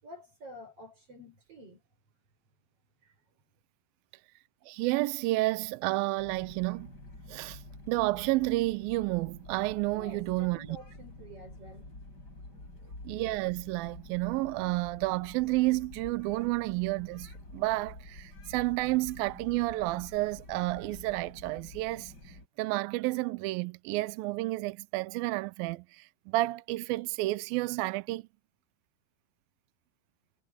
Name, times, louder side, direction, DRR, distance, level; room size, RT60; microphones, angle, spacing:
voice 1, 0.0-1.8 3.0-3.1 9.9-11.9 12.8-13.0, equal, 35° right, 5.9 m, -49 dB
voice 2, 4.7-6.9 7.3-10.7 13.0-28.2, right 20 dB, 80° right, 2.3 m, -31 dB
sound 1, 6.2-22.5, left 2 dB, 25° left, 7.6 m, -49 dB
omnidirectional pair, 4.5 m